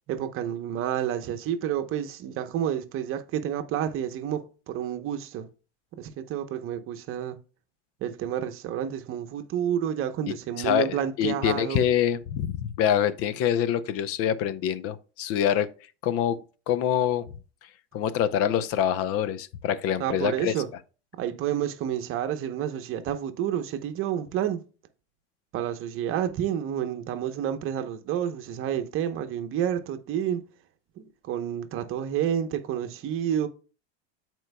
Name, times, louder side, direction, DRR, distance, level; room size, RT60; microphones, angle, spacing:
voice 1, 0.1-5.5 6.0-7.4 8.0-11.9 20.0-20.7 21.2-24.6 25.5-30.4 31.0-33.5, right 10 dB, 40° right, 0.9 m, -29 dB
voice 2, 10.3-15.7 16.0-16.4 16.7-17.3 17.9-20.5, left 9 dB, 45° left, 0.7 m, -25 dB
13.5 x 4.6 x 2.2 m
supercardioid pair, 125°, 34 cm